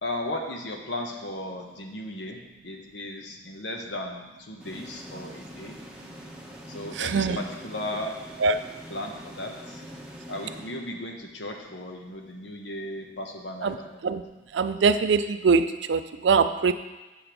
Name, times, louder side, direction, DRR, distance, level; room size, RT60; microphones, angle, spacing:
voice 1, 0.0-2.4 2.6-5.7 6.7-8.1 8.9-9.8 10.3-14.0, left 1 dB, 80° left, 2 dB, 1.1 m, -36 dB
sound 1, 4.6-11.4, equal, 5° right, 1.0 m, -44 dB
voice 2, 6.9-7.4 8.4-8.6 13.6-13.8 14.0-14.2 14.5-16.7, right 5 dB, 80° right, 10 dB, 0.4 m, -23 dB
7.6 x 5.2 x 6.0 m, 1.1 s
head